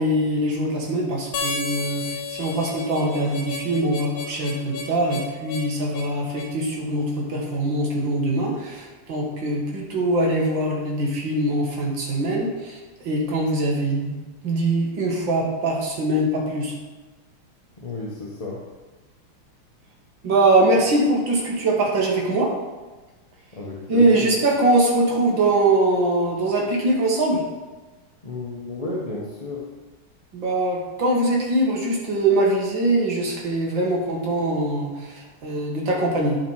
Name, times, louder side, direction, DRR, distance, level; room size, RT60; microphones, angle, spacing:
voice 1, 0.0-12.8 13.0-14.1 14.4-16.7 20.2-22.5 23.9-27.4 30.3-36.4, right 1 dB, 60° right, -2 dB, 2.4 m, -22 dB
Harmonica, 1.3-6.6, left 4 dB, 70° left, 2.0 m, -32 dB
voice 2, 17.8-18.6 23.5-24.3 28.2-29.6, left 2 dB, 25° left, -4 dB, 0.8 m, -32 dB
12.0 x 5.1 x 4.8 m, 1.2 s
omnidirectional pair, 2.4 m